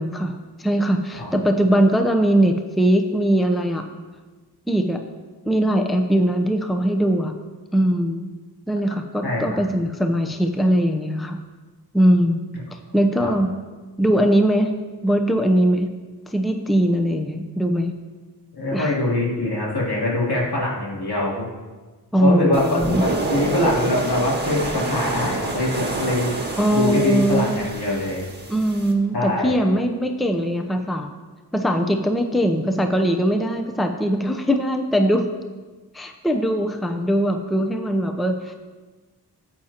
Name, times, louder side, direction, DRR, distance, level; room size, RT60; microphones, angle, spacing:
voice 1, 0.0-3.9 4.7-5.0 5.5-7.3 7.7-8.2 8.7-11.4 11.9-12.4 12.9-13.5 14.0-14.7 15.0-15.9 16.3-17.9 18.7-18.9 22.1-23.0 26.6-27.6 28.5-31.2 31.5-35.3 35.9-38.5, equal, ahead, 5 dB, 0.7 m, -20 dB
voice 2, 9.2-9.6 13.2-13.3 18.5-21.5 22.2-26.3 26.7-28.2 29.1-29.6, left 1 dB, 70° left, -6 dB, 3.2 m, -23 dB
sound 1, 22.5-28.9, right 2 dB, 25° right, 1.9 m, -28 dB
14.0 x 8.6 x 2.9 m, 1.3 s
cardioid pair, 55°, 40 cm